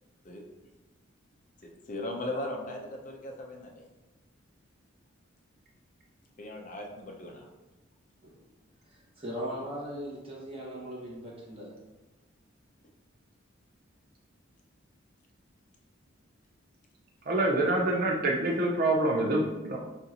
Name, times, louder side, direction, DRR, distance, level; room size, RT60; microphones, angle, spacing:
voice 1, 1.6-3.8 6.4-7.5, left 1 dB, 40° left, 1 dB, 0.6 m, -38 dB
voice 2, 9.2-11.7, equal, 25° right, -6 dB, 1.4 m, -38 dB
voice 3, 17.3-19.8, right 2 dB, 45° right, -1 dB, 0.5 m, -26 dB
6.6 x 2.6 x 2.8 m, 1.1 s
head